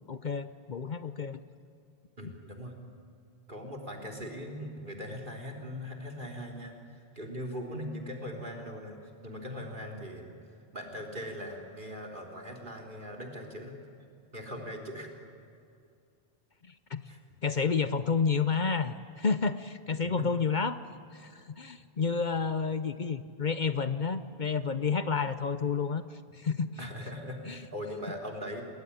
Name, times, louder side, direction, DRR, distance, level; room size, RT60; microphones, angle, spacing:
voice 1, 0.1-1.4 16.9-17.0 17.4-20.8 21.1-26.0 26.3-26.9 27.5-27.6, left 5 dB, 50° left, 12 dB, 0.9 m, -30 dB
voice 2, 2.2-2.7 3.5-9.0 9.2-10.3 10.7-13.8 14.3-15.1 17.0-17.2 20.0-20.3 26.8-28.6, equal, 55° right, 1 dB, 4.0 m, -40 dB
28.5 x 20.0 x 10.0 m, 2.4 s
omnidirectional pair, 1.0 m